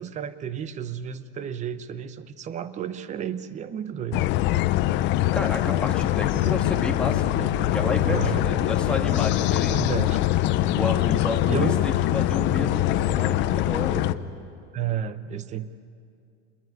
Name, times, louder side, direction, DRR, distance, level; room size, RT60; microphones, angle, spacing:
voice 1, 0.0-4.3 8.0-8.5 9.7-10.2 11.4-11.8 14.7-15.7, right 9 dB, 20° right, 14 dB, 0.8 m, -32 dB
sound 1, 4.1-14.1, left 14 dB, 35° left, 0.7 m, -23 dB
voice 2, 5.3-9.8 10.7-14.1, left 2 dB, 5° left, 0 dB, 2.2 m, -31 dB
27.5 x 21.5 x 9.3 m, 2.3 s
supercardioid pair, 155°, 33 cm